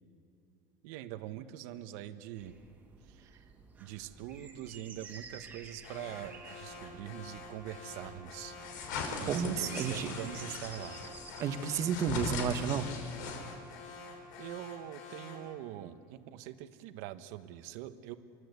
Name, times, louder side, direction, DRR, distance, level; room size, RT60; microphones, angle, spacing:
voice 1, 0.8-2.5 3.1-3.2 3.8-8.6 9.2-11.0 14.4-18.1, right 12 dB, 60° right, 9 dB, 1.5 m, -43 dB
sound 1, 2.4-11.6, right 4 dB, 15° right, 2.4 m, -52 dB
Alarm, 5.8-15.5, left 4 dB, 55° left, 7.2 m, -48 dB
sound 2, 8.6-13.7, left 4 dB, 85° left, 5.3 m, -40 dB
voice 2, 9.3-10.1 11.4-12.9, right 7 dB, 30° right, 7 dB, 1.6 m, -31 dB
28.0 x 23.5 x 8.4 m, 2.4 s
cardioid pair, 165°, 10 cm